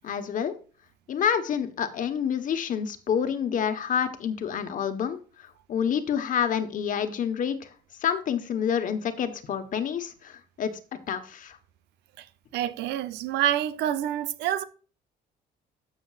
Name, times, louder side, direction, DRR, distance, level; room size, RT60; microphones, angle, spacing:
voice 1, 0.0-0.5 1.1-5.2 5.7-7.6 8.0-10.3 10.6-10.8 11.1-11.6, left 8 dB, 50° left, 1.3 m, -28 dB
voice 2, 12.5-14.6, right 11 dB, 85° right, 0.8 m, -27 dB
13.0 x 7.0 x 2.5 m
cardioid pair, 110°, 17 cm